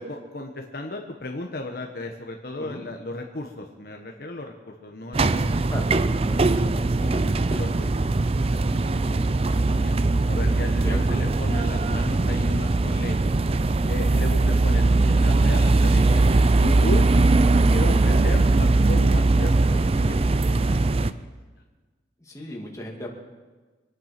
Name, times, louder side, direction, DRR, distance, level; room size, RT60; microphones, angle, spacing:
voice 1, 0.0-5.5 5.8-6.2 6.4-6.6 7.0-9.9 10.3-13.2 13.9-17.1 17.7-21.3, left 2 dB, 55° left, 2 dB, 1.2 m, -36 dB
sound 1, 5.1-21.1, right 2 dB, 35° right, 0.5 m, -20 dB
voice 2, 10.8-11.2 18.1-18.3 22.2-23.1, left 1 dB, 20° left, -1 dB, 2.4 m, -36 dB
25.0 x 9.2 x 6.0 m, 1.3 s
head